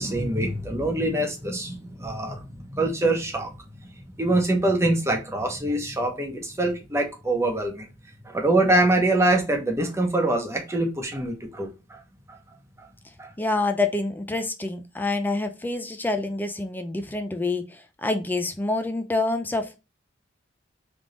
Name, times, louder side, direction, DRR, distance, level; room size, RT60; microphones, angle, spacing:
voice 1, 0.0-3.5 4.2-7.8 8.3-12.0 13.2-13.3, right 1 dB, 15° right, 1.0 m, -24 dB
voice 2, 13.4-19.8, left 2 dB, 10° left, 0.5 m, -27 dB
3.4 x 3.4 x 3.9 m
head